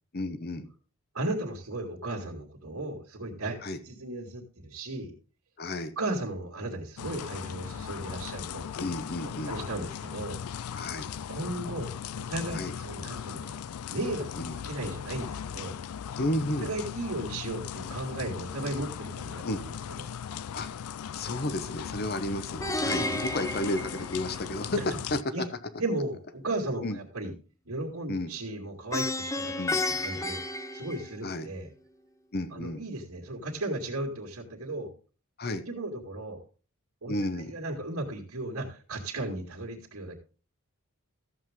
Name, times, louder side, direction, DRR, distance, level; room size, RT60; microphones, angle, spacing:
voice 1, 0.1-0.7 3.6-3.8 5.6-5.9 8.8-9.6 10.7-11.1 12.5-12.7 14.4-14.6 16.2-16.7 19.4-19.6 20.5-24.8 25.1-25.2 26.8-27.0 28.1-28.3 29.6-29.7 31.2-31.5 32.3-32.8 35.4-35.6 37.1-37.5, left 1 dB, 45° left, 11 dB, 1.0 m, -32 dB
voice 2, 1.1-3.6 3.8-5.1 6.0-8.7 9.4-10.4 11.3-13.6 13.9-15.8 16.6-20.1 23.0-23.2 24.8-24.9 25.3-25.4 25.8-27.3 27.7-30.4 30.7-31.7 32.5-34.9 35.7-36.4 37.0-40.2, right 2 dB, 80° right, -4 dB, 2.3 m, -35 dB
sound 1, 7.0-25.2, left 8 dB, 90° left, 0.4 m, -38 dB
Plucked string instrument, 22.6-24.8 28.9-31.5, left 2 dB, 15° left, 0.6 m, -32 dB
14.0 x 7.8 x 3.6 m, 0.36 s
head